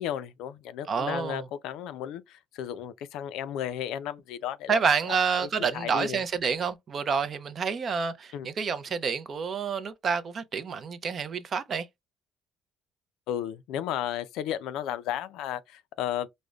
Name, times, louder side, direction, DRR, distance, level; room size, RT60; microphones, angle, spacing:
voice 1, 0.0-4.8 5.1-5.5 5.7-6.2 8.3-8.5 13.3-16.3, left 10 dB, 80° left, 0.3 m, -34 dB
voice 2, 0.9-1.5 4.7-11.9, right 6 dB, 40° right, 0.4 m, -28 dB
4.9 x 2.1 x 2.3 m
cardioid pair, 135°, 0 cm